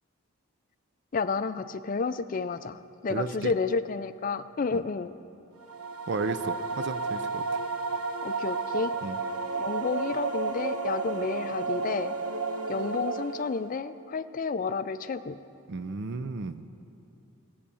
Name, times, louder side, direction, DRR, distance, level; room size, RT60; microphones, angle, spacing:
voice 1, 1.1-5.1 8.2-8.9 9.6-12.1 12.7-15.4, left 4 dB, 40° left, 12 dB, 0.4 m, -31 dB
voice 2, 3.1-3.5 4.7-4.8 6.1-7.6 9.0-9.2 15.7-16.7, right 3 dB, 50° right, 12 dB, 0.5 m, -33 dB
sound 1, 5.6-13.8, right 4 dB, 85° right, 1.0 m, -32 dB
16.5 x 8.5 x 7.0 m, 2.9 s
head